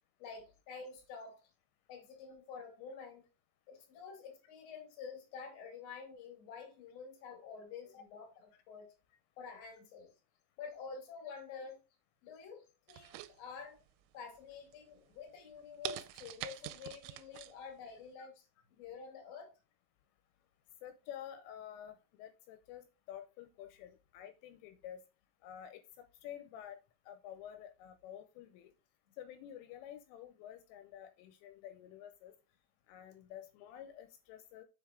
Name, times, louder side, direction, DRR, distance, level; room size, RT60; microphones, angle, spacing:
voice 1, 0.2-1.5 1.9-3.2 3.7-8.9 9.4-10.1 10.6-11.8 12.2-13.8 14.1-18.3 18.8-19.5, left 5 dB, 50° left, 3 dB, 2.1 m, -49 dB
sound 1, 12.9-13.9 14.4-14.7 15.2-15.3 15.8-17.5 17.9-18.0, right 16 dB, 90° right, 3.2 m, -44 dB
voice 2, 20.8-25.0 25.4-26.8 27.1-28.7 29.2-32.3 32.9-34.7, left 10 dB, 80° left, 8 dB, 3.0 m, -50 dB
7.0 x 5.4 x 3.6 m, 0.31 s
omnidirectional pair, 5.8 m